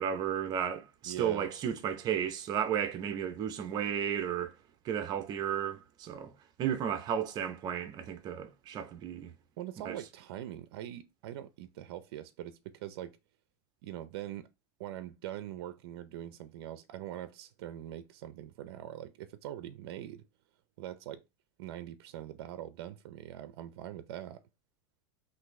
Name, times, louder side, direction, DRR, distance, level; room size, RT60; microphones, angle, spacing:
voice 1, 0.0-4.5 4.8-6.3 6.6-9.3 9.8-10.0, right 9 dB, 30° right, 0.7 m, -33 dB
voice 2, 1.0-1.5 9.6-13.2 13.8-14.5 14.8-20.2 20.8-21.2 21.6-24.4, right 12 dB, 65° right, 0.5 m, -43 dB
5.9 x 2.6 x 3.1 m
supercardioid pair, 150°, 13 cm